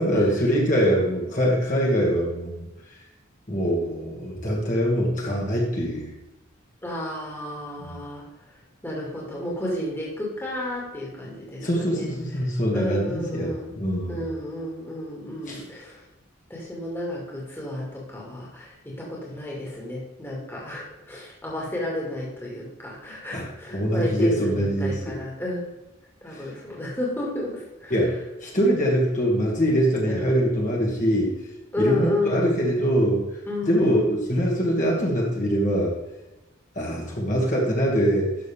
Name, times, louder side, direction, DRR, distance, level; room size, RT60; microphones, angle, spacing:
voice 1, 0.0-2.7 3.5-6.1 7.8-7.9 11.6-14.3 15.5-15.6 23.3-25.2 26.3-26.5 27.9-31.3 31.8-33.2 33.6-35.9 36.8-38.4, equal, 40° left, -3 dB, 2.2 m, -23 dB
voice 2, 6.8-8.2 8.8-12.1 12.4-13.7 14.1-16.0 16.5-25.7 26.2-28.0 30.1-30.3 31.7-32.5 33.5-34.1, left 1 dB, 10° left, -4 dB, 2.3 m, -31 dB
12.5 x 6.4 x 3.6 m, 1.0 s
head